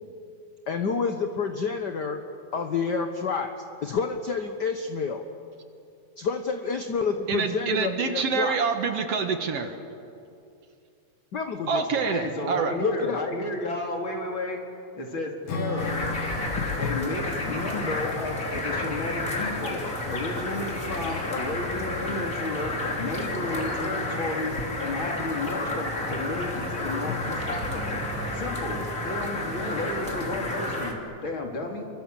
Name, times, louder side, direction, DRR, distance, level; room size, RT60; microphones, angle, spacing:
voice 1, 0.7-2.2 2.5-3.5 3.8-5.2 6.2-8.6 11.3-12.1 12.8-13.2 16.6-17.0 27.1-27.2, left 5 dB, 60° left, 6 dB, 1.1 m, -29 dB
voice 2, 7.3-9.8 11.7-12.8, right 5 dB, 60° right, 7 dB, 2.1 m, -26 dB
voice 3, 12.0-14.6 14.9-16.0 16.8-28.0 28.3-31.9, left 2 dB, 45° left, 2 dB, 3.4 m, -32 dB
Acoustic guitar / Strum, 15.5-20.3, left 3 dB, 85° left, 3.7 m, -38 dB
sound 1, 15.8-30.9, left 2 dB, 25° left, 3.2 m, -31 dB
28.5 x 23.5 x 7.6 m, 2.6 s
omnidirectional pair, 3.4 m